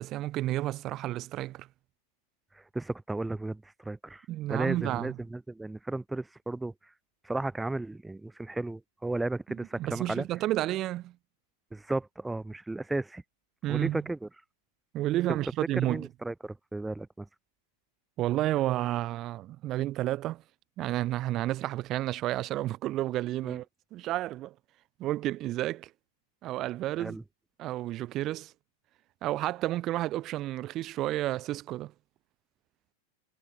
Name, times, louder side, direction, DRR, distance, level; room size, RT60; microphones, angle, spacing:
voice 1, 0.0-1.7 4.3-5.2 9.8-11.2 13.6-14.0 14.9-16.1 18.2-20.4 20.8-23.6 23.9-24.5 25.0-25.9 26.4-27.2 27.6-28.5 29.2-31.9, right 15 dB, 35° right, 3.0 m, -31 dB
voice 2, 2.5-6.7 7.2-10.3 11.7-13.2 13.7-14.3 15.8-17.3 23.4-23.6 27.0-27.2, right 2 dB, 5° right, 0.7 m, -34 dB
figure-of-eight pair, 90°, 0 cm